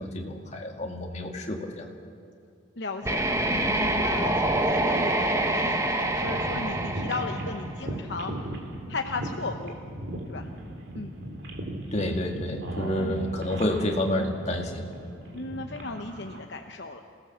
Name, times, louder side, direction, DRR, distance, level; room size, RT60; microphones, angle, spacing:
voice 1, 0.0-1.9 11.9-14.9, left 1 dB, 35° left, 2 dB, 2.1 m, -29 dB
voice 2, 2.8-8.3 8.9-9.8 10.3-10.5 11.0-11.2 13.0-13.2 15.3-17.0, left 3 dB, 60° left, 4 dB, 0.9 m, -36 dB
sound 1, 3.0-8.0, right 1 dB, 15° right, 1.2 m, -26 dB
sound 2, 6.2-16.4, right 1 dB, 60° right, 2.9 m, -37 dB
27.0 x 17.5 x 7.3 m, 2.3 s
head